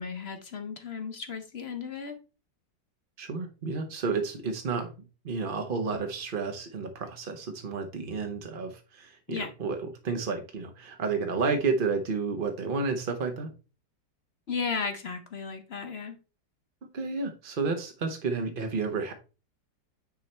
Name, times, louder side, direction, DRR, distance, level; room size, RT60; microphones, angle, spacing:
voice 1, 0.0-2.2 9.3-9.5 14.5-16.2, left 5 dB, 50° left, 7 dB, 0.8 m, -35 dB
voice 2, 3.2-4.9 5.2-9.8 10.0-13.5 16.8-19.1, right 4 dB, 50° right, 5 dB, 0.6 m, -31 dB
9.6 x 3.2 x 4.3 m, 0.33 s
omnidirectional pair, 1.9 m